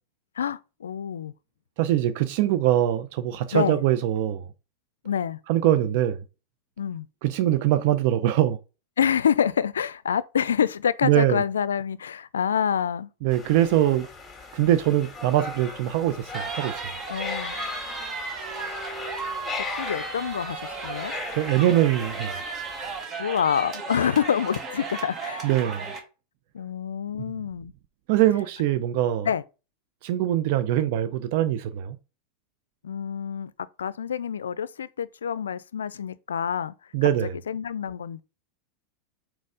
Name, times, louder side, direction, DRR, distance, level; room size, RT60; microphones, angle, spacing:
voice 1, 0.4-1.3 3.5-3.8 5.0-5.4 6.8-7.1 9.0-13.1 17.1-17.6 19.5-21.1 23.2-25.5 26.5-27.7 29.2-29.4 32.8-33.5 33.8-36.7 37.2-38.2, left 8 dB, 90° left, 0.4 m, -27 dB
voice 2, 1.8-4.4 5.5-6.2 7.2-8.6 11.0-11.4 13.2-14.1 14.5-16.7 21.3-22.4 25.4-25.8 28.1-29.3 30.0-32.0 36.9-37.3, right 12 dB, 60° right, 0.5 m, -22 dB
sound 1, 13.3-23.1, left 4 dB, 20° left, 2.2 m, -38 dB
sound 2, 16.3-26.0, right 5 dB, 35° right, 1.8 m, -35 dB
4.5 x 4.3 x 4.8 m
hypercardioid pair, 105°, 0 cm